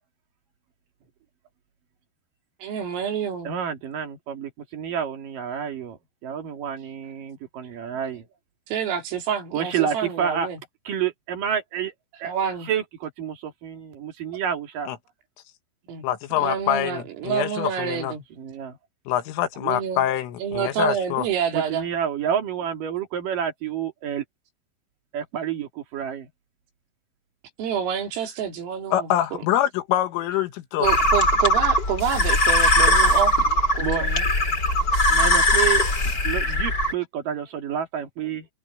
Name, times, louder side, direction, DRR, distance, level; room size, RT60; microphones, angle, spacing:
voice 1, 2.6-3.6 8.7-10.6 12.2-12.7 15.9-16.1 16.4-18.2 19.6-20.1 20.4-21.9 27.6-29.4 30.8-33.4 33.7-34.3, right 8 dB, 80° right, 6.1 m, -28 dB
voice 2, 3.4-8.3 9.5-10.5 10.9-11.9 12.2-12.3 12.6-14.9 18.4-18.8 21.5-24.2 25.1-26.3 33.8-34.1 35.1-35.8 36.2-38.5, right 8 dB, 50° right, 3.5 m, -29 dB
voice 3, 16.0-18.1 19.1-21.3 28.9-30.9, left 12 dB, 75° left, 3.9 m, -25 dB
sound 1, 30.8-36.9, left 1 dB, 20° left, 4.3 m, -20 dB
omnidirectional pair, 5.9 m